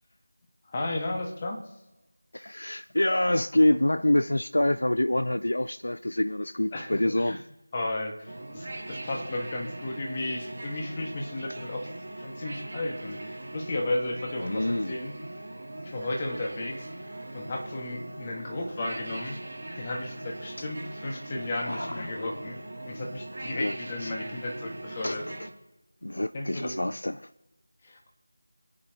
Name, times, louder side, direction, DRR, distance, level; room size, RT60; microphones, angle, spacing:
voice 1, 0.7-1.6 6.7-7.4 7.7-11.9 12.2-15.2 15.8-16.9 17.3-19.4 19.8-22.6 22.9-25.2 26.3-26.7 27.8-28.1, left 2 dB, 20° left, 1.8 m, -34 dB
voice 2, 2.3-7.4 14.4-15.0 20.6-20.7 21.6-22.4 23.4-23.7 24.0-24.1 25.0-25.2 26.0-27.3, left 1 dB, 65° left, 0.4 m, -26 dB
sound 1, 8.3-25.5, right 1 dB, 35° right, 2.1 m, -40 dB
28.5 x 9.6 x 3.0 m
figure-of-eight pair, 170°, 0 cm